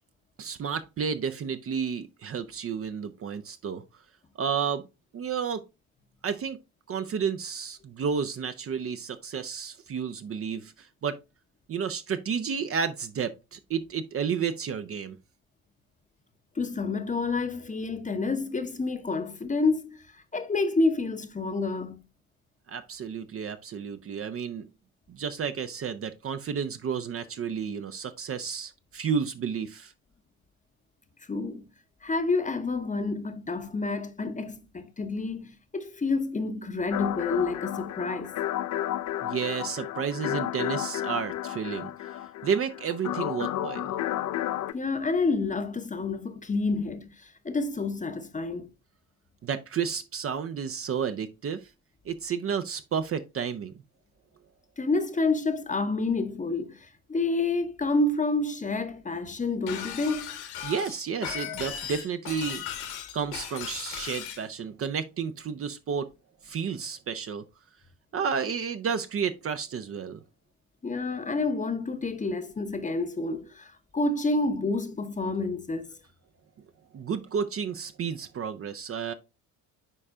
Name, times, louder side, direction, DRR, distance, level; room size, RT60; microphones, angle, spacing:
voice 1, 0.4-3.8 4.4-4.9 5.1-5.6 6.2-6.6 6.9-11.2 11.7-15.2 22.7-24.7 25.1-29.9 39.2-43.9 49.4-51.7 52.0-53.7 60.6-62.6 63.1-66.1 66.4-67.4 68.1-70.2 76.9-79.1, right 6 dB, 30° right, 0.6 m, -31 dB
voice 2, 16.6-22.0 31.3-31.6 32.0-38.3 44.7-48.7 54.8-60.3 70.8-76.0, left 3 dB, 20° left, 0.9 m, -29 dB
sound 1, 36.9-44.7, left 12 dB, 40° left, 0.6 m, -32 dB
Shatter, 59.7-64.4, left 10 dB, 60° left, 1.6 m, -37 dB
9.9 x 4.3 x 2.4 m
hypercardioid pair, 60°, 43 cm